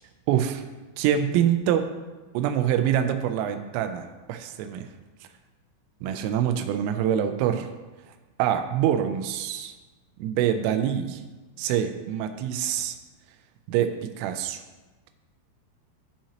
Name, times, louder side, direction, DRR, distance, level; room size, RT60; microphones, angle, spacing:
voice 1, 0.3-0.6 1.0-1.8 2.3-4.9 6.0-7.7 8.4-9.7 10.2-11.2 11.6-13.0 13.7-13.9 14.2-14.6, right 10 dB, 90° right, 7 dB, 3.2 m, -25 dB
14.0 x 5.7 x 2.9 m, 1.2 s
omnidirectional pair, 5.7 m